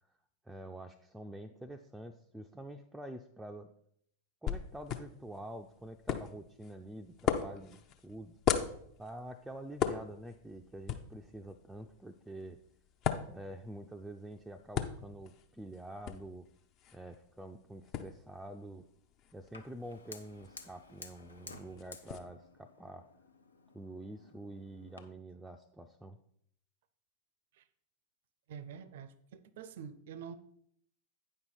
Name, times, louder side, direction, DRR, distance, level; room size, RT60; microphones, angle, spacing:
voice 1, 0.4-3.7 4.4-8.4 9.0-12.6 13.3-16.5 16.9-18.8 19.3-23.1 23.7-26.2, right 1 dB, 5° right, 0.4 m, -47 dB
sound 1, 4.5-22.2, left 8 dB, 35° left, 0.6 m, -40 dB
Fire, 19.5-25.0, left 3 dB, 80° left, 0.6 m, -54 dB
voice 2, 28.5-30.4, right 7 dB, 55° right, 0.5 m, -47 dB
8.9 x 5.5 x 4.2 m
figure-of-eight pair, 90°, 0 cm